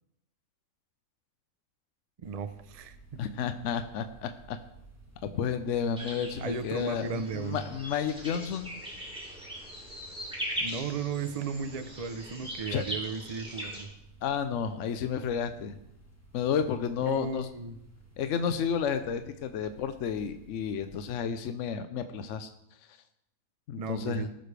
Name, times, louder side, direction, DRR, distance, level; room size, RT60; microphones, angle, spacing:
sound 1, 2.2-21.3, right 3 dB, 10° left, 1.6 m, -56 dB
voice 1, 2.2-3.2 6.4-7.6 10.6-13.9 17.0-17.8 23.7-24.3, right 5 dB, 45° right, 8 dB, 0.5 m, -35 dB
voice 2, 3.2-4.6 5.3-8.7 12.7-12.8 14.2-15.7 16.3-17.5 18.2-22.5 23.7-24.3, left 7 dB, 70° left, 9 dB, 1.0 m, -31 dB
sound 2, 6.0-13.8, equal, 5° right, 2.9 m, -40 dB
19.0 x 6.7 x 3.3 m, 0.82 s
omnidirectional pair, 1.4 m